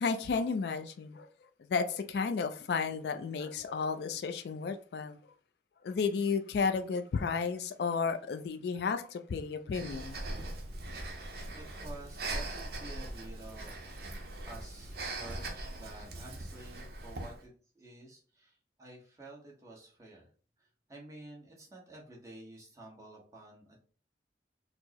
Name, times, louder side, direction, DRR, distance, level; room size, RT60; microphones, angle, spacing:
voice 1, 0.0-1.3 1.7-5.2 5.8-10.2, left 5 dB, 65° left, 0.3 m, -32 dB
Breathing, 9.7-17.4, right 2 dB, 55° right, 0.7 m, -41 dB
voice 2, 11.5-13.9 14.4-20.3 20.6-23.8, right 2 dB, 20° right, 1.0 m, -51 dB
4.4 x 2.0 x 2.8 m
head